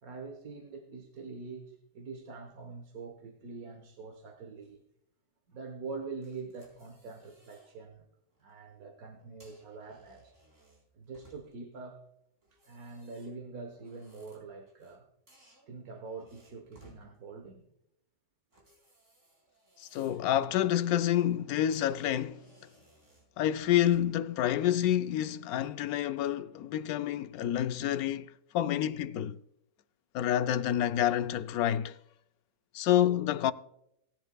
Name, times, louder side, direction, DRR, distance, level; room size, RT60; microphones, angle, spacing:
voice 1, 0.0-4.8 5.5-8.0 8.4-10.3 10.9-12.0 12.5-15.0 15.7-17.6, right 4 dB, 90° right, 1.7 m, -44 dB
sound 1, 6.2-7.8 8.2-8.4 9.2-11.7 12.4-15.0 15.3-17.0 18.5-20.3 20.7-20.9 21.4-21.5 21.7-24.3, right 2 dB, 60° right, 4.3 m, -62 dB
voice 2, 19.8-22.4 23.4-29.4 30.1-32.0 32.7-33.5, left 11 dB, 90° left, 1.1 m, -28 dB
18.5 x 10.0 x 2.3 m
omnidirectional pair, 1.5 m